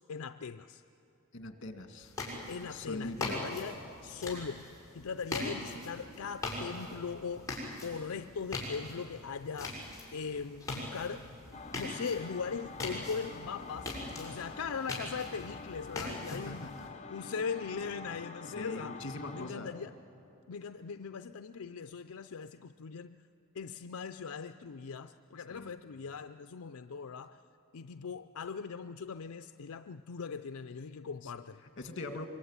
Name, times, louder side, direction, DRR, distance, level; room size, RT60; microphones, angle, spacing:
voice 1, 0.1-0.8 2.5-4.7 4.9-11.2 11.8-16.7 17.1-19.0 19.3-20.0 20.5-23.2 23.5-27.4 27.7-31.6, left 5 dB, 90° left, 10 dB, 0.5 m, -40 dB
voice 2, 1.3-2.1 2.7-3.4 16.3-16.9 17.2-17.3 18.6-19.7 25.5-25.7 31.2-31.3 31.8-32.3, left 2 dB, 60° left, 6 dB, 2.0 m, -42 dB
sound 1, 2.0-16.9, left 2 dB, 15° left, 6.1 m, -42 dB
sound 2, 11.5-19.5, left 4 dB, 30° left, 1.0 m, -47 dB
24.0 x 23.5 x 9.6 m, 2.9 s
head